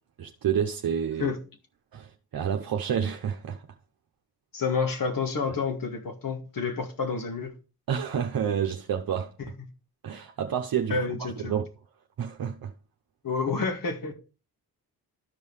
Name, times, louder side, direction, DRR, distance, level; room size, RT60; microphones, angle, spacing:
voice 1, 0.2-1.3 1.9-3.6 7.9-9.3 10.0-11.6 12.2-12.7, right 8 dB, 60° right, 1.0 m, -29 dB
voice 2, 4.5-7.5 10.9-11.6 13.2-14.1, left 5 dB, 55° left, 2.3 m, -29 dB
13.0 x 5.3 x 3.3 m
cardioid pair, 55°, 40 cm